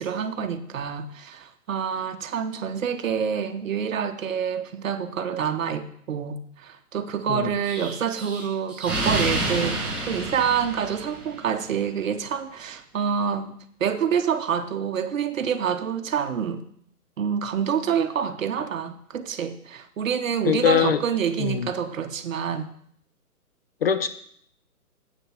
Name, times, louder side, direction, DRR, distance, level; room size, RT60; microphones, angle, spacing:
voice 1, 0.0-13.5 13.8-16.6 17.2-22.7, right 7 dB, 55° right, 9 dB, 1.1 m, -27 dB
Explosion, 7.6-11.5, right 2 dB, ahead, 0.9 m, -29 dB
voice 2, 20.4-21.0 21.4-21.7 23.8-24.1, left 8 dB, 40° left, 11 dB, 0.6 m, -22 dB
8.5 x 6.6 x 6.2 m, 0.65 s
hypercardioid pair, 150°, 46 cm